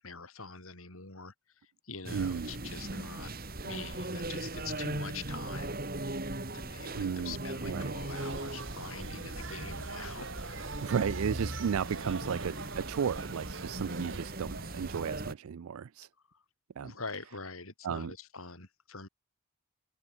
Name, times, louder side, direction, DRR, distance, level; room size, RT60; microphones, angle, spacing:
voice 1, 0.0-3.3 3.6-5.8 6.5-10.9 16.3-16.4 16.8-19.1, left 4 dB, 75° left, 4.5 m, -45 dB
sound 1, 2.0-15.3, right 2 dB, 40° right, 2.6 m, -39 dB
voice 2, 2.1-2.5 6.9-7.4 7.6-7.9 10.8-16.1 16.8-16.9 17.8-18.1, right 7 dB, 75° right, 0.4 m, -34 dB
sound 2, 8.1-15.0, right 3 dB, 60° right, 2.8 m, -43 dB
head